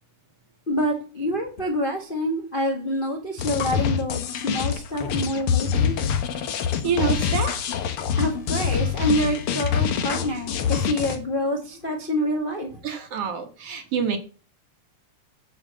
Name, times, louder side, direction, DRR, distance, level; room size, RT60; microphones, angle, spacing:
voice 1, 0.7-6.0 8.2-12.8, equal, 30° left, 1 dB, 0.9 m, -27 dB
sound 1, 3.4-11.2, left 7 dB, 60° left, 1.7 m, -25 dB
voice 2, 6.8-7.5 12.8-14.2, right 6 dB, 60° right, 7 dB, 2.1 m, -26 dB
9.8 x 5.1 x 7.3 m, 0.37 s
omnidirectional pair, 3.3 m